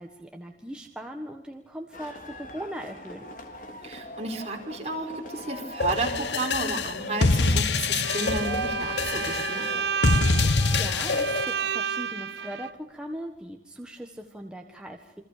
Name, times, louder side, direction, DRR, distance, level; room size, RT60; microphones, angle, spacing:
voice 1, 0.0-3.3 10.3-15.2, equal, 5° right, 2 dB, 1.5 m, -39 dB
sound 1, 1.9-11.7, equal, 45° left, 3.7 m, -41 dB
voice 2, 3.8-9.6, right 2 dB, 35° right, 1 dB, 4.9 m, -32 dB
sound 2, 5.8-11.4, left 3 dB, 80° left, 1.0 m, -25 dB
Bowed string instrument, 8.0-12.7, right 7 dB, 80° right, 1.2 m, -31 dB
28.5 x 24.5 x 6.8 m, 0.87 s
head